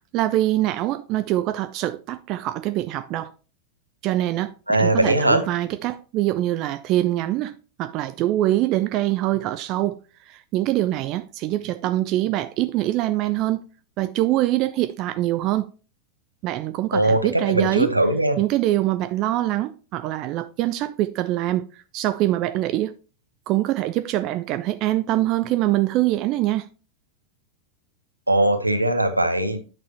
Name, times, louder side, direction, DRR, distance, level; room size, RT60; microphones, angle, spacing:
voice 1, 0.1-3.3 4.0-10.0 10.3-13.7 14.0-15.7 16.4-18.0 18.4-22.9 23.5-26.7, right 15 dB, 40° right, 0.4 m, -24 dB
voice 2, 4.7-5.4 16.9-18.4 28.3-29.6, right 1 dB, 85° right, 1.0 m, -20 dB
8.6 x 6.1 x 2.9 m
figure-of-eight pair, 90°, 0 cm